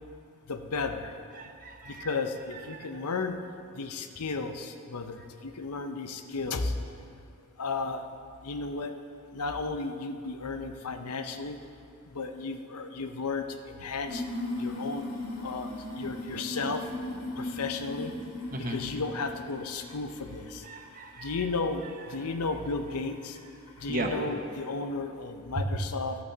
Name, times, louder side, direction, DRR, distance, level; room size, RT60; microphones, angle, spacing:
voice 1, 0.5-1.1 1.9-3.4 3.8-6.7 7.6-8.0 8.4-8.9 9.3-11.6 12.1-14.2 14.6-15.1 15.4-16.8 17.4-18.1 18.6-20.6 21.2-21.8 22.1-23.4 23.8-26.2, left 3 dB, 90° left, 7 dB, 0.7 m, -34 dB
voice 2, 1.4-2.1 2.7-2.9 18.5-18.8 20.6-21.4 23.9-24.1 25.6-25.7, right 1 dB, 35° right, 2 dB, 1.0 m, -35 dB
sound 1, 14.0-20.5 20.8-21.3 22.1-22.2 23.0-23.1 23.7-23.9, left 1 dB, 65° left, 1.7 m, -38 dB
11.5 x 6.0 x 7.3 m, 2.4 s
head